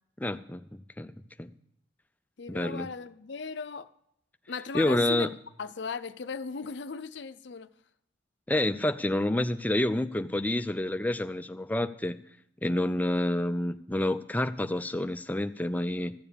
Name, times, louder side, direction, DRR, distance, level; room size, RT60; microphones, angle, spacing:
voice 1, 0.2-1.1 1.4-1.5 2.5-2.9 4.7-5.3 8.5-12.1 12.6-16.1, left 1 dB, 10° left, 0.4 m, -28 dB
voice 2, 2.4-3.9 4.5-5.3 5.6-7.7, left 5 dB, 60° left, 0.6 m, -37 dB
14.0 x 7.3 x 7.0 m
head